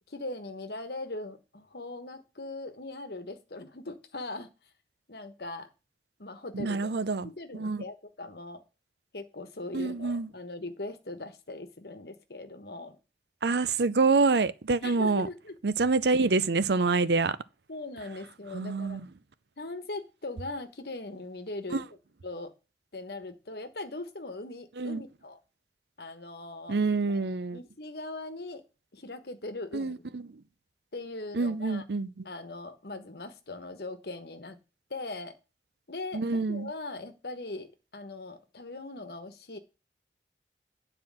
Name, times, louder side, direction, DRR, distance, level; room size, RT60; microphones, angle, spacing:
voice 1, 0.1-4.5 5.1-5.7 6.2-6.9 7.2-8.6 9.1-13.0 14.8-15.5 17.7-19.0 19.6-21.8 22.2-22.5 22.9-25.4 26.0-26.8 27.1-27.2 27.5-28.6 28.9-30.1 30.9-31.8 32.2-34.6 34.9-35.4 35.9-39.6, left 2 dB, 65° left, 1.2 m, -40 dB
voice 2, 6.5-7.8 9.7-10.3 13.4-15.3 15.6-17.4 18.5-19.1 21.7-21.8 24.8-25.0 26.7-27.6 29.7-30.4 31.3-32.2 36.1-36.7, right 3 dB, 70° right, 0.6 m, -27 dB
9.7 x 4.4 x 7.5 m
head